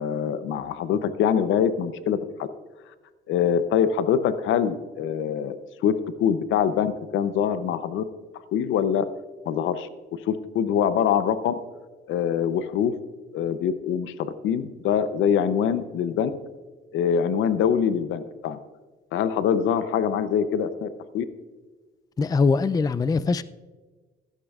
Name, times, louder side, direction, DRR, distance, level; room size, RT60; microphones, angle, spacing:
voice 1, 0.0-2.5 3.3-5.9 6.2-8.0 8.5-9.1 9.5-9.9 10.3-11.5 12.1-12.9 13.3-16.3 16.9-18.6 19.1-20.9 21.1-21.3, left 8 dB, 80° left, 0.7 m, -24 dB
voice 2, 22.2-23.4, left 4 dB, 20° left, 0.4 m, -22 dB
16.0 x 12.0 x 2.4 m
cardioid pair, 90°, 20 cm